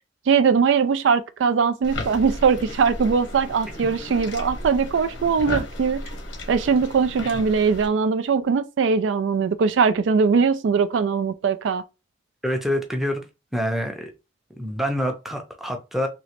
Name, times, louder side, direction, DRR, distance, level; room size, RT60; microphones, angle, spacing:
voice 1, 0.3-6.0 6.5-11.8, right 5 dB, 80° right, 0.3 m, -21 dB
sound 1, 1.8-7.9, left 1 dB, 90° left, 0.9 m, -34 dB
voice 2, 12.4-13.2 13.5-14.1 14.5-16.1, equal, ahead, 0.6 m, -26 dB
3.1 x 2.8 x 2.9 m
head